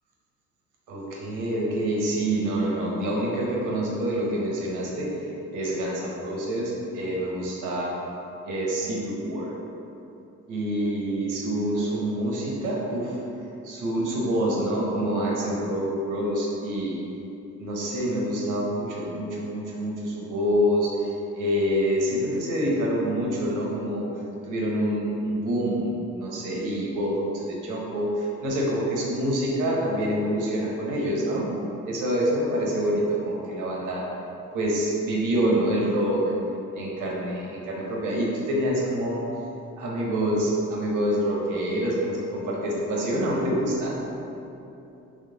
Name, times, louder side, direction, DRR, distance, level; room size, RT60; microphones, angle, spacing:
voice 1, 0.9-5.2 5.5-8.0 8.4-9.5 10.5-13.2 13.6-17.0 17.6-21.1 21.3-24.1 24.4-31.5 31.9-34.1 34.5-36.2 36.7-39.2 39.8-43.9, equal, 85° right, -3 dB, 1.0 m, -26 dB
3.8 x 3.1 x 3.8 m, 2.9 s
cardioid pair, 90°, 30 cm